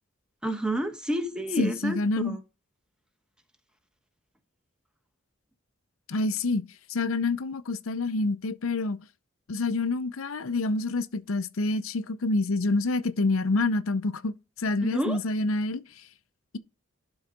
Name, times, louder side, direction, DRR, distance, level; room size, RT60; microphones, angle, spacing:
voice 1, 0.4-2.4 14.8-15.2, right 1 dB, 5° right, 1.0 m, -29 dB
voice 2, 1.6-2.4 6.1-6.6 6.9-9.0 9.5-16.0, left 3 dB, 85° left, 0.7 m, -27 dB
11.5 x 4.0 x 5.2 m
head